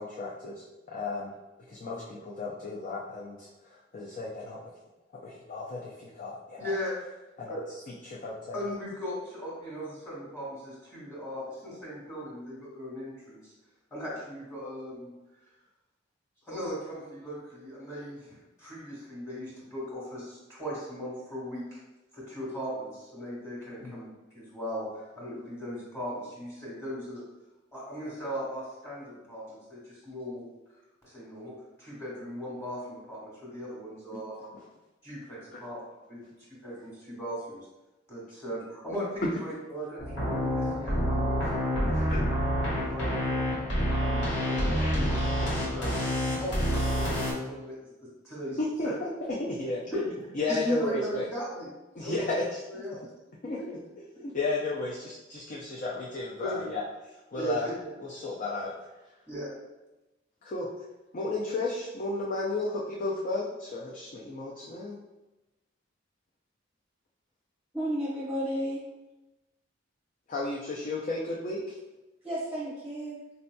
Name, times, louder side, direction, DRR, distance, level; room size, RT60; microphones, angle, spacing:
voice 1, 0.0-1.3 1.7-4.7 5.1-6.8 7.4-7.5 8.0-8.6 23.8-24.0 34.4-34.5 35.5-35.6 39.2-39.3 42.0-42.2 48.6-49.8 50.4-51.3 52.0-52.6 53.4-54.1 54.3-56.8 57.3-57.7 58.0-58.7 60.4-60.7 61.1-64.9 70.3-71.8, left 3 dB, 45° left, -4 dB, 0.4 m, -33 dB
voice 2, 6.6-6.9 7.5-7.6 8.5-13.5 13.9-15.1 16.4-21.8 22.1-24.1 24.3-27.2 27.7-30.4 31.0-31.5 31.8-34.3 35.0-35.8 36.1-36.2 36.6-37.6 38.1-42.2 42.9-43.4 44.0-46.0 46.4-48.6 48.8-48.9 49.9-50.0 50.5-51.7 52.0-52.4 52.7-53.0 53.6-53.7 54.1-54.2 56.4-56.7 57.3-57.7 59.3-59.5, equal, 15° left, -8 dB, 1.3 m, -38 dB
sound 1, 40.0-47.3, equal, 65° left, 1.4 m, -28 dB
voice 3, 67.7-68.8 72.2-73.2, equal, 10° right, -6 dB, 0.7 m, -32 dB
4.2 x 2.7 x 2.2 m, 1.0 s
head